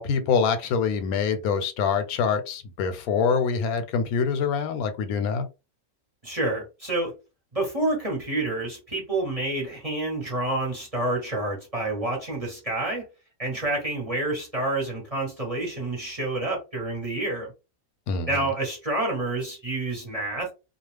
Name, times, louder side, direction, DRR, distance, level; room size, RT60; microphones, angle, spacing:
voice 1, 0.0-5.5 18.1-18.5, left 6 dB, 90° left, 1.1 m, -25 dB
voice 2, 6.2-7.1 7.5-13.0 13.4-17.5 18.3-20.5, right 2 dB, 30° right, 0.9 m, -28 dB
2.4 x 2.3 x 3.2 m
omnidirectional pair, 1.5 m